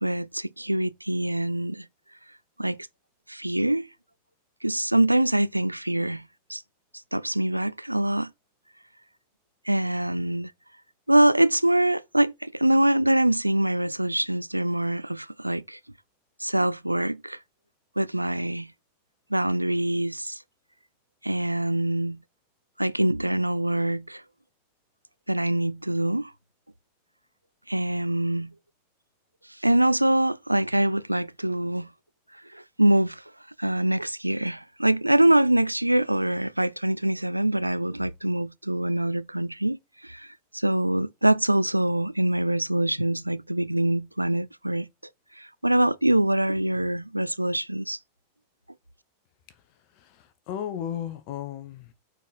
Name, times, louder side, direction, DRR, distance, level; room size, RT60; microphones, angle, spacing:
voice 1, 0.0-1.9 2.6-2.8 3.3-3.9 4.6-6.2 6.5-6.6 7.1-8.3 9.7-10.5 11.1-15.8 16.4-17.4 18.0-18.7 19.3-20.4 21.2-22.2 22.8-24.2 25.3-26.3 27.7-28.5 29.6-31.9 32.5-33.2 33.6-44.9 45.4-48.0, right 1 dB, 85° right, 0.3 m, -24 dB
voice 2, 49.5-51.9, left 10 dB, 45° left, 1.2 m, -36 dB
8.8 x 4.6 x 4.2 m
figure-of-eight pair, 90°, 0 cm